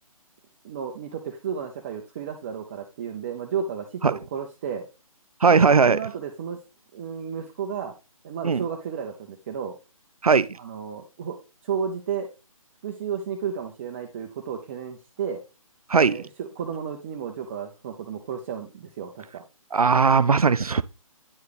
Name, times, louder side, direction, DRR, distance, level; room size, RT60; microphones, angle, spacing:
voice 1, 0.6-4.8 5.5-6.6 6.9-7.9 8.2-9.7 10.6-11.4 11.6-12.3 12.8-15.4 15.9-19.4, right 7 dB, 20° right, 0.5 m, -33 dB
voice 2, 5.4-6.0 8.4-8.6 10.2-10.5 15.9-16.2 19.7-20.8, right 5 dB, 90° right, 0.5 m, -18 dB
9.5 x 4.7 x 3.4 m
figure-of-eight pair, 145°, 18 cm